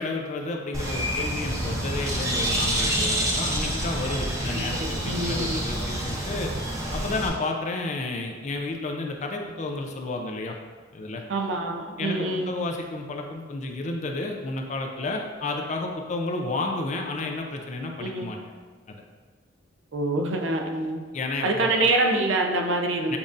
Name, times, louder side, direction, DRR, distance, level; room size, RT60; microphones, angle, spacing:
voice 1, 0.0-6.5 6.9-10.6 10.9-11.2 12.0-18.4 18.9-19.0 21.1-21.9 23.1-23.2, left 2 dB, 40° left, 2 dB, 0.4 m, -31 dB
Bird, 0.7-7.3, equal, 15° right, 0.6 m, -27 dB
voice 2, 4.5-5.6 11.3-12.5 18.0-18.3 19.9-21.0 21.4-23.2, right 2 dB, 70° right, 2 dB, 0.5 m, -26 dB
7.0 x 2.6 x 2.5 m, 1.5 s
head